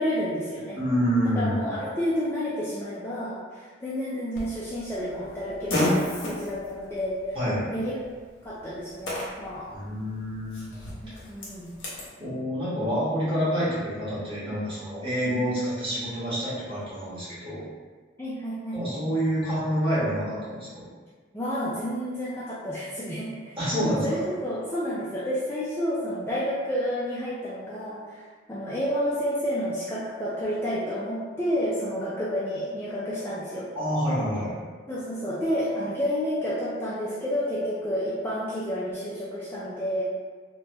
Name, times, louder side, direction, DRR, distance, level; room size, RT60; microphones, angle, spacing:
voice 1, 0.0-0.8 1.4-7.4 7.7-8.0 8.4-9.7 11.0-11.7 18.2-19.2 21.3-23.6 24.0-33.7 34.9-40.0, equal, 10° left, -9 dB, 0.4 m, -30 dB
voice 2, 0.7-1.7 7.3-7.6 9.7-10.8 12.2-17.6 18.7-20.8 23.6-24.2 33.7-34.5, equal, 25° right, -11 dB, 1.3 m, -27 dB
Fart, 4.3-12.1, left 1 dB, 80° left, 1.0 m, -33 dB
3.1 x 2.2 x 2.9 m, 1.5 s
head